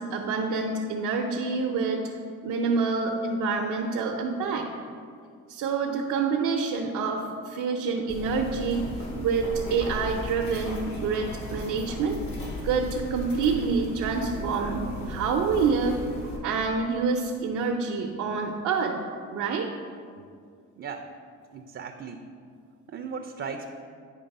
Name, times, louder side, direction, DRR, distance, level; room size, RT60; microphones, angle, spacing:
voice 1, 0.0-2.1 2.4-4.7 5.5-8.9 9.2-12.2 12.6-16.0 16.4-19.0 19.3-19.7, right 5 dB, 80° right, -1 dB, 0.7 m, -27 dB
sound 1, 8.1-16.4, left 1 dB, 70° left, 1.7 m, -36 dB
voice 2, 21.5-22.2 22.9-23.7, right 6 dB, 40° right, 5 dB, 0.5 m, -36 dB
9.7 x 3.3 x 5.3 m, 2.1 s
cardioid pair, 90°, 30 cm